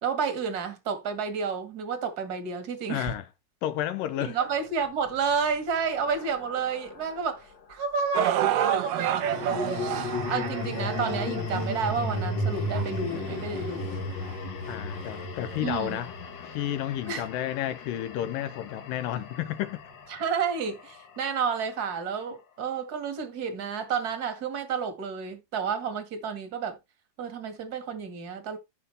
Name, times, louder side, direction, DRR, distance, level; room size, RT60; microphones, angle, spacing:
voice 1, 0.0-3.1 4.2-9.8 10.3-14.0 15.6-16.0 17.1-17.3 20.1-26.8 27.2-28.6, right 6 dB, 35° right, 1.6 m, -30 dB
voice 2, 2.9-3.2 3.6-4.4 14.7-16.1 16.4-19.8, left 12 dB, 75° left, 2.2 m, -31 dB
sound 1, 4.8-7.3 9.0-21.2, left 2 dB, 55° left, 1.3 m, -35 dB
sound 2, 8.1-14.4 15.1-15.2 15.9-16.0, right 11 dB, 75° right, 2.2 m, -31 dB
13.5 x 5.4 x 3.4 m
omnidirectional pair, 4.5 m